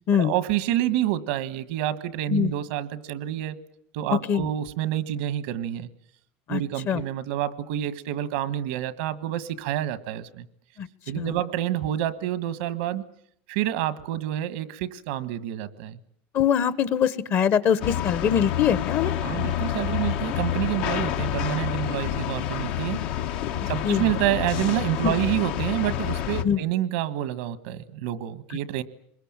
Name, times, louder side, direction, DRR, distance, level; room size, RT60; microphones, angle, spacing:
voice 1, 0.1-3.6 3.9-5.9 6.5-10.5 11.1-13.0 13.5-16.0 19.2-23.0 23.7-28.8, right 12 dB, 85° right, 16 dB, 1.5 m, -28 dB
voice 2, 4.1-4.5 6.5-6.6 6.9-7.0 10.8-10.9 11.1-11.3 16.3-19.1 23.8-24.0 25.0-25.2 26.4-26.6, left 8 dB, 45° left, 16 dB, 1.1 m, -23 dB
sound 1, 17.8-26.4, left 11 dB, 80° left, 1.4 m, -28 dB
24.5 x 21.5 x 8.9 m, 0.69 s
supercardioid pair, 130°, 6 cm